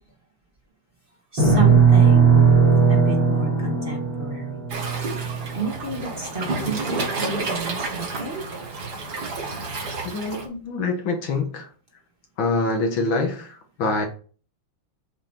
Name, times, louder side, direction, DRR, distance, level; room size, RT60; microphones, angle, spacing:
voice 1, 1.3-2.6 2.9-4.6 5.5-8.4, right 3 dB, 25° right, 1.9 m, -31 dB
sound 1, 1.4-5.8, right 5 dB, 70° right, 3.5 m, -18 dB
Waves surf, 4.7-10.4, right 3 dB, 50° right, 2.2 m, -30 dB
voice 2, 10.0-11.7 12.4-14.1, left 3 dB, 65° left, 2.1 m, -25 dB
7.5 x 5.7 x 4.4 m
omnidirectional pair, 2.3 m